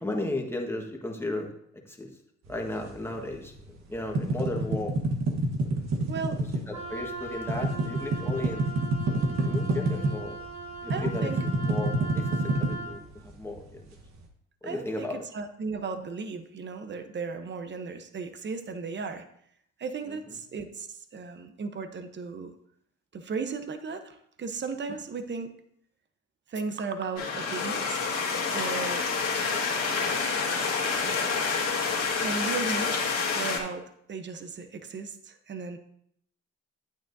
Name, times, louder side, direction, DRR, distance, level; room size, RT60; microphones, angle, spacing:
voice 1, 0.0-1.5 1.9-2.1 2.5-3.5 3.9-4.9 6.7-8.7 9.5-10.4 10.8-11.3 11.6-12.3 12.6-13.8 14.6-15.2, left 2 dB, 10° left, 1 dB, 1.5 m, -34 dB
sound 1, 2.5-3.7 4.0-10.3 10.6-13.6, right 2 dB, 65° right, 1.3 m, -28 dB
voice 2, 6.1-6.4 10.9-11.4 14.6-19.2 19.8-22.5 23.1-25.6 26.5-28.0 28.5-29.4 31.0-31.4 32.2-33.0 33.3-35.8, right 4 dB, 35° right, 8 dB, 0.9 m, -36 dB
Wind instrument woodwind instrument, 6.7-13.0, right 2 dB, 80° right, 2.2 m, -39 dB
sound 2, 27.2-33.6, left 5 dB, 60° left, 2.1 m, -28 dB
9.2 x 8.8 x 2.7 m, 0.70 s
cardioid pair, 90°, 30 cm